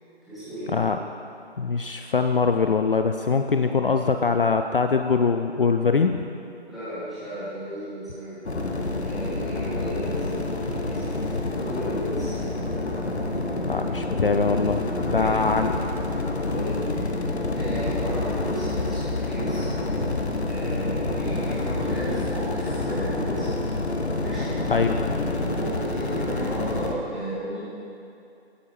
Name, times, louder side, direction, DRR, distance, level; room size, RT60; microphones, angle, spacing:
voice 1, 0.2-0.8 1.8-2.0 6.7-8.5 9.0-11.2 11.5-12.4 15.1-15.6 16.4-16.9 17.5-19.7 20.4-23.5 24.2-24.7 25.3-27.6, right 1 dB, ahead, -16 dB, 2.5 m, -34 dB
voice 2, 1.6-6.2 13.6-15.8 24.7-24.9, left 5 dB, 55° left, 6 dB, 0.5 m, -23 dB
sound 1, 8.5-26.9, left 2 dB, 75° left, 1.2 m, -27 dB
16.0 x 9.1 x 3.2 m, 2.6 s
figure-of-eight pair, 150°, 33 cm